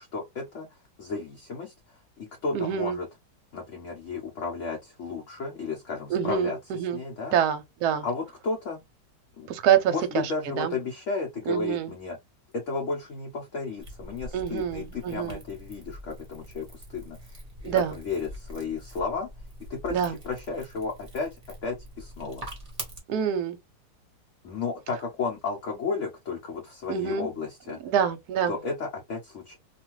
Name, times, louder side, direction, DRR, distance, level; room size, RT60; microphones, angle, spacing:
voice 1, 0.0-3.1 3.5-6.6 6.9-7.3 8.0-8.8 9.4-9.5 9.9-12.2 12.5-17.2 17.6-19.3 19.7-21.4 21.6-22.4 24.4-27.8 28.5-29.6, left 4 dB, 60° left, 0.9 m, -33 dB
voice 2, 2.5-3.0 6.1-7.0 7.3-8.0 9.5-10.3 10.6-10.7 11.5-11.9 14.3-15.4 17.6-17.9 19.9-20.2 23.1-23.6 26.9-27.3 27.8-28.5, right 8 dB, 70° right, 1.0 m, -26 dB
sound 1, 13.8-23.0, equal, 30° right, 0.9 m, -44 dB
2.7 x 2.4 x 3.0 m
omnidirectional pair, 1.9 m